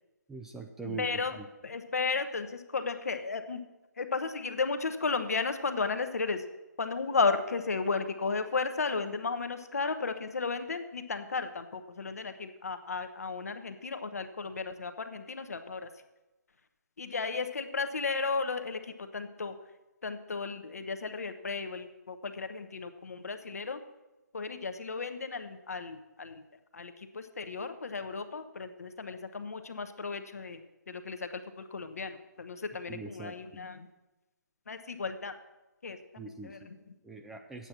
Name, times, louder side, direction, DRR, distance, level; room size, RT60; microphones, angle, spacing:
voice 1, 0.3-1.1 1.4-1.5 32.9-33.3 36.2-36.7 37.0-37.7, right 4 dB, 5° right, 2 dB, 0.4 m, -42 dB
voice 2, 0.8-3.6 4.0-6.4 6.8-15.9 17.0-19.5 20.0-23.8 24.3-26.4 26.7-33.9 34.7-35.4 35.8-36.9, left 4 dB, 55° left, 9 dB, 1.0 m, -34 dB
9.9 x 8.4 x 5.9 m, 1.0 s
figure-of-eight pair, 140°, 10 cm